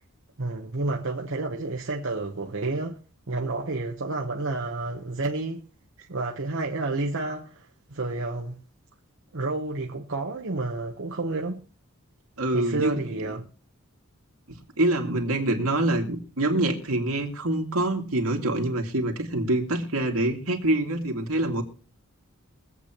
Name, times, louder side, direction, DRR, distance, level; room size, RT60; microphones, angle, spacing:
voice 1, 0.4-3.0 3.3-5.6 6.1-8.6 9.3-11.6 12.5-13.5, right 2 dB, 60° right, 1.0 m, -30 dB
voice 2, 12.4-13.2 14.5-21.6, right 1 dB, 85° right, 2.2 m, -25 dB
23.5 x 8.3 x 3.0 m
head